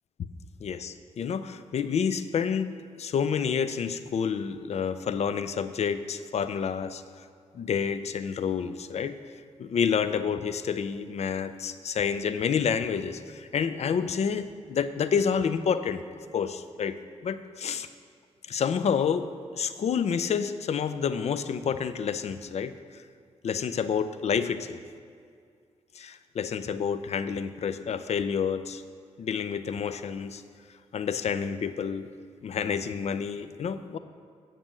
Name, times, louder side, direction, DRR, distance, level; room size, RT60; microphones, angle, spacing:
voice 1, 0.6-7.0 7.5-9.2 9.6-16.0 16.3-17.0 17.2-17.9 18.5-22.7 23.4-24.8 25.9-28.8 29.2-30.4 30.9-32.1 32.4-34.0, left 7 dB, 65° left, 11 dB, 0.5 m, -29 dB
8.9 x 6.7 x 7.6 m, 2.2 s
wide cardioid pair, 105°, 12 cm